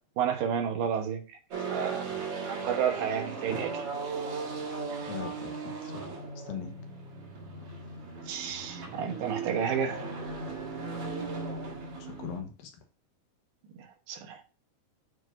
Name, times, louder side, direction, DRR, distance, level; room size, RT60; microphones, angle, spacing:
voice 1, 0.2-1.2 1.7-2.1 2.4-3.9 4.9-5.1 8.3-10.0 14.1-14.4, right 8 dB, 75° right, 2.8 m, -31 dB
sound 1, 1.5-12.4, right 4 dB, 50° right, 2.2 m, -37 dB
voice 2, 5.0-6.7 12.0-12.7, left 6 dB, 85° left, 2.9 m, -41 dB
9.5 x 4.6 x 2.6 m
omnidirectional pair, 4.0 m